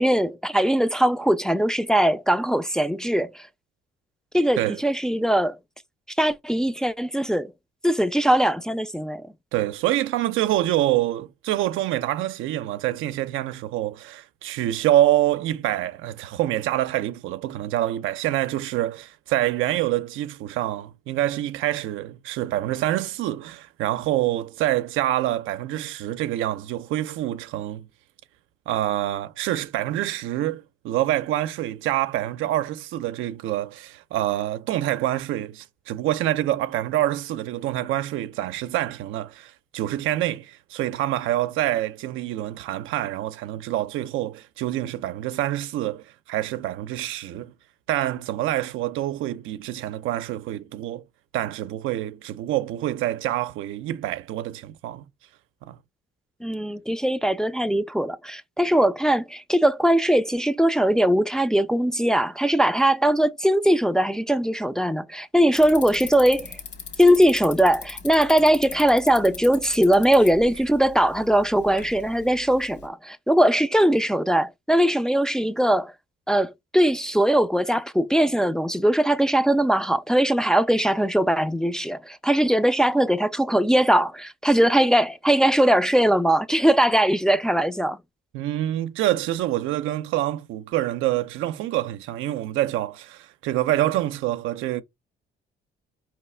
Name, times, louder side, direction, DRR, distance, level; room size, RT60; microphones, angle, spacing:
voice 1, 0.0-3.5 4.3-5.6 6.2-7.5 7.8-9.3 56.4-66.6 67.0-75.9 76.3-88.0, right 1 dB, 5° left, 0.3 m, -20 dB
voice 2, 9.5-27.9 28.7-47.5 47.9-51.0 51.3-55.0 55.6-55.8 88.3-94.8, right 14 dB, 90° right, 0.5 m, -26 dB
Bicycle, 65.6-72.9, left 5 dB, 60° left, 1.3 m, -40 dB
4.7 x 3.0 x 3.2 m
cardioid pair, 90°, 20 cm